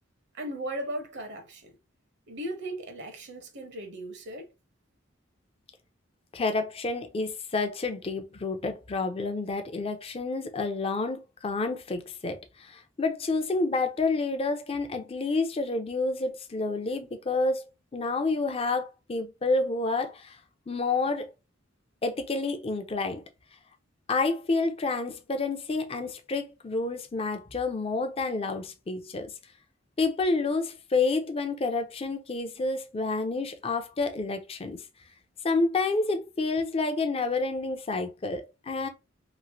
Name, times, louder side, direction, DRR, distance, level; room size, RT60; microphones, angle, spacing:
voice 1, 0.3-1.7 2.3-4.5, right 1 dB, 60° right, 0.7 m, -37 dB
voice 2, 6.3-17.6 17.9-20.4 20.7-21.3 22.0-23.2 24.1-29.3 30.0-34.8 35.4-38.9, left 3 dB, 30° left, 0.5 m, -29 dB
3.0 x 2.5 x 2.6 m
head